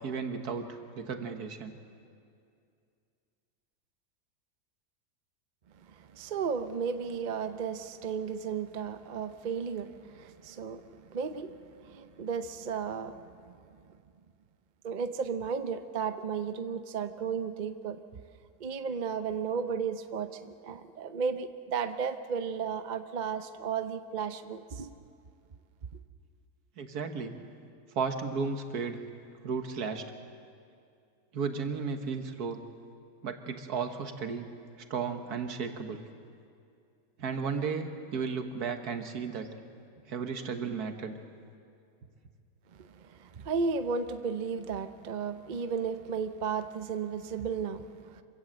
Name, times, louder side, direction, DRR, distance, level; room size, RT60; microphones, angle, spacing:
voice 1, 0.0-1.7 26.8-27.4 27.9-29.0 29.4-30.1 31.3-32.6 33.2-34.5 34.9-36.0 37.2-39.5 40.1-41.2, right 5 dB, 70° right, 7 dB, 1.8 m, -34 dB
voice 2, 5.9-13.8 14.8-18.0 18.6-24.9 42.8-48.2, right 6 dB, 45° right, 10 dB, 0.6 m, -34 dB
26.0 x 16.0 x 7.8 m, 2.4 s
omnidirectional pair, 1.8 m